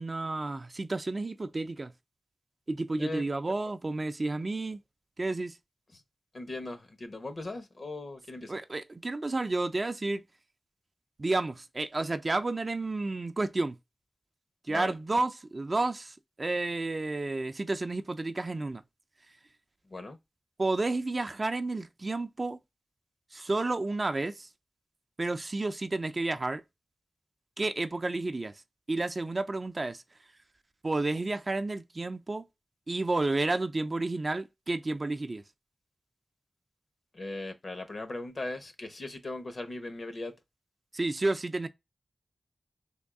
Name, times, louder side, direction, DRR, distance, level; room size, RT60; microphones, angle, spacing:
voice 1, 0.0-1.9 2.7-4.8 5.2-5.6 8.5-10.2 11.2-13.8 14.7-18.8 20.6-22.6 23.3-24.5 25.2-26.6 27.6-28.6 28.9-30.0 30.8-32.5 32.9-35.4 40.9-41.7, right 2 dB, 40° right, 0.4 m, -31 dB
voice 2, 6.3-8.6 14.7-14.9 19.9-20.2 37.1-40.3, left 2 dB, 55° left, 0.8 m, -38 dB
3.5 x 2.2 x 3.6 m
wide cardioid pair, 65°, 0 cm